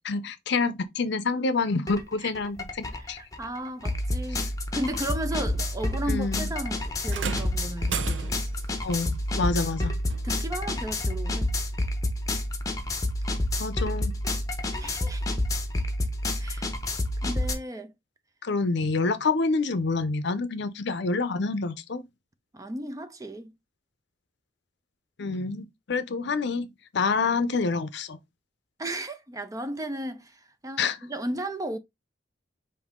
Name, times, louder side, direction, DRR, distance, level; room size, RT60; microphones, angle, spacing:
voice 1, 0.1-3.2 4.3-4.5 6.1-6.5 8.8-9.9 13.6-14.1 18.4-22.0 25.2-26.7 26.9-28.2 30.8-31.0, left 4 dB, 65° left, 0.6 m, -27 dB
sound 1, 1.9-2.0 2.3-17.5, left 1 dB, 20° left, 0.8 m, -29 dB
voice 2, 3.0-4.5 4.7-8.4 10.2-11.6 14.7-15.4 16.4-16.7 17.2-17.9 22.5-23.5 28.8-31.8, right 1 dB, 20° right, 0.5 m, -35 dB
sound 2, 7.1-8.6 10.1-10.3 11.1-11.2, right 5 dB, 75° right, 0.6 m, -34 dB
5.4 x 2.7 x 3.6 m
head